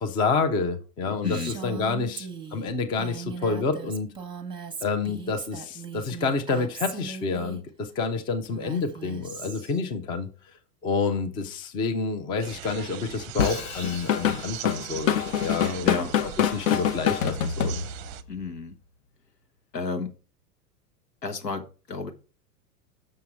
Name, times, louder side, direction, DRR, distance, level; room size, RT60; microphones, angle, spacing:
voice 1, 0.0-4.1 4.8-10.3 10.8-17.8, left 4 dB, 10° left, 0.3 m, -28 dB
voice 2, 1.1-1.5 15.8-16.1 18.3-18.8 19.7-20.1 21.2-22.1, left 4 dB, 85° left, 1.2 m, -31 dB
Female speech woman speaking, 1.2-7.6 8.4-9.8, right 6 dB, 10° right, 0.9 m, -39 dB
sound 1, 12.4-18.2, right 11 dB, 35° right, 0.6 m, -40 dB
Drum kit / Drum, 13.4-18.2, left 8 dB, 55° left, 0.8 m, -25 dB
6.3 x 5.7 x 4.3 m
hypercardioid pair, 100°, 48 cm